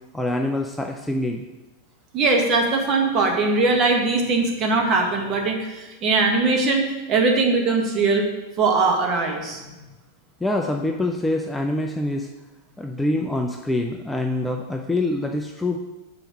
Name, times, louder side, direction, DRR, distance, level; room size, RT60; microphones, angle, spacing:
voice 1, 0.1-1.5 10.4-12.3 12.8-15.8, left 1 dB, 5° left, 2 dB, 0.5 m, -25 dB
voice 2, 2.1-8.3 8.6-9.6, right 3 dB, 30° right, 2 dB, 1.4 m, -21 dB
5.7 x 4.1 x 6.0 m, 1.1 s
figure-of-eight pair, 90°, 0 cm